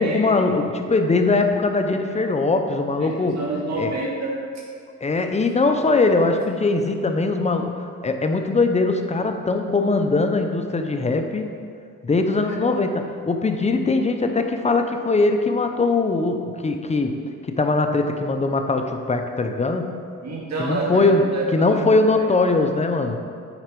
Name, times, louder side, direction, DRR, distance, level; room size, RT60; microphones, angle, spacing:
voice 1, 0.0-3.4 3.8-3.9 5.0-11.5 12.0-17.2 17.5-20.0 20.6-21.2 21.5-23.2, left 3 dB, 20° left, 5 dB, 0.7 m, -21 dB
voice 2, 3.0-4.4 12.4-12.6 20.2-21.8 22.1-22.2, right 2 dB, 60° right, -3 dB, 2.1 m, -28 dB
9.0 x 4.2 x 5.3 m, 2.2 s
cardioid pair, 90°, 30 cm